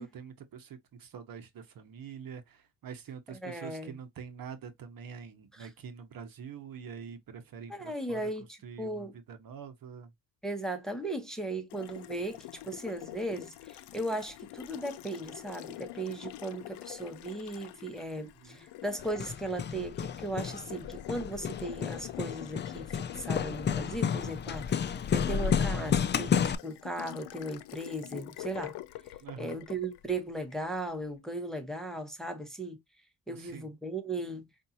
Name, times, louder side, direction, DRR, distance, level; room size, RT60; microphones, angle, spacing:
voice 1, 0.0-8.2 8.6-10.1 18.2-18.7 29.2-29.6 33.3-33.7, right 7 dB, 60° right, 1.1 m, -45 dB
voice 2, 3.3-4.0 5.5-5.7 7.7-9.1 10.4-28.8 29.4-32.8 33.3-34.5, right 1 dB, ahead, 1.1 m, -37 dB
Water tap faucet, 11.7-30.9, left 16 dB, 90° left, 0.6 m, -46 dB
Hammer, 19.0-26.6, left 7 dB, 30° left, 0.3 m, -31 dB
5.2 x 2.6 x 2.8 m
cardioid pair, 105°, 40 cm